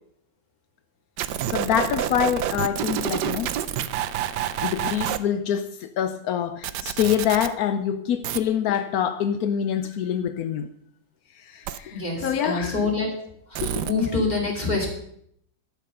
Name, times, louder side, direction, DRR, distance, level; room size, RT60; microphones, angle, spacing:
sound 1, 1.2-5.2 6.6-7.5 8.2-8.4 11.7-11.8 13.5-13.9, right 11 dB, 70° right, 1.2 m, -28 dB
voice 1, 1.5-3.5 4.6-10.7 11.3-12.9 13.6-14.1, left 9 dB, 75° left, 0.9 m, -26 dB
voice 2, 11.9-13.1 13.5-14.9, left 3 dB, 20° left, 2.9 m, -26 dB
12.0 x 7.5 x 6.5 m
omnidirectional pair, 2.1 m